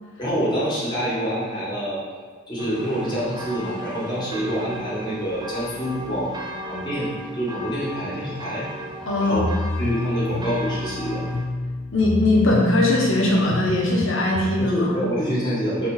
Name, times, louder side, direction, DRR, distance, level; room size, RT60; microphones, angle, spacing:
voice 1, 0.2-2.0 2.5-6.4 6.6-8.7 9.2-9.5 9.8-11.2 14.6-15.9, equal, 20° left, -7 dB, 1.7 m, -26 dB
sound 1, 2.6-11.5, right 1 dB, 20° right, 0.5 m, -36 dB
voice 2, 9.1-9.4 11.9-15.0, left 2 dB, 60° left, -3 dB, 1.3 m, -20 dB
sound 2, 9.3-14.7, left 2 dB, 45° left, 0.3 m, -29 dB
4.2 x 4.1 x 5.6 m, 1.5 s
head